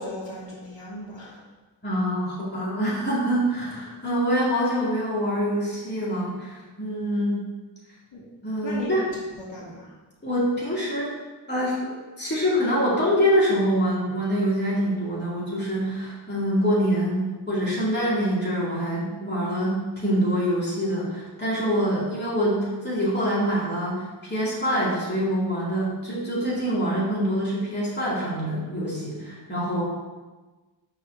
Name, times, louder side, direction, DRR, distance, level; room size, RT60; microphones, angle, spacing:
voice 1, 0.0-1.4 8.1-8.2 8.6-9.9, left 1 dB, 75° left, -6 dB, 2.3 m, -36 dB
voice 2, 1.8-7.4 8.4-9.0 10.2-11.1 11.5-29.8, equal, 25° left, -7 dB, 2.2 m, -25 dB
5.8 x 4.1 x 6.2 m, 1.2 s
wide cardioid pair, 125°, 45 cm